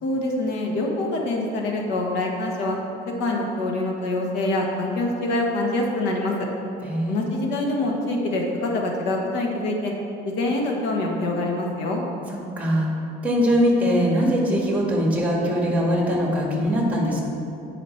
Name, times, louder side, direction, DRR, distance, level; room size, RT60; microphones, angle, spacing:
voice 1, 0.0-2.8 3.2-6.5 7.1-9.9 10.4-12.0, left 2 dB, 80° left, 0 dB, 1.3 m, -25 dB
voice 2, 6.8-7.3 12.3-12.9 13.2-17.2, equal, 10° right, -2 dB, 1.7 m, -22 dB
9.0 x 5.0 x 4.4 m, 2.7 s
cardioid pair, 115°, 18 cm